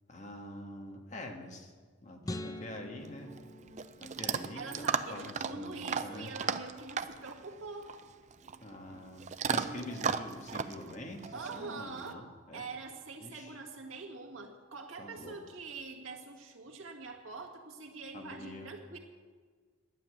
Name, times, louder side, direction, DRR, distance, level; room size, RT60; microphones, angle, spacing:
voice 1, 0.1-1.7 2.0-3.3 4.0-6.3 8.6-9.2 9.5-12.7 13.2-13.6 15.0-15.4 18.1-18.7, left 1 dB, 35° left, 3 dB, 1.5 m, -45 dB
sound 1, 2.2-4.6, left 1 dB, 20° left, 0.6 m, -44 dB
Chewing mastication / Dog, 3.0-12.1, right 6 dB, 35° right, 0.4 m, -37 dB
voice 2, 4.5-7.9 11.3-12.2 12.5-19.0, right 4 dB, 85° right, 1 dB, 2.0 m, -44 dB
11.5 x 7.1 x 9.4 m, 1.5 s
head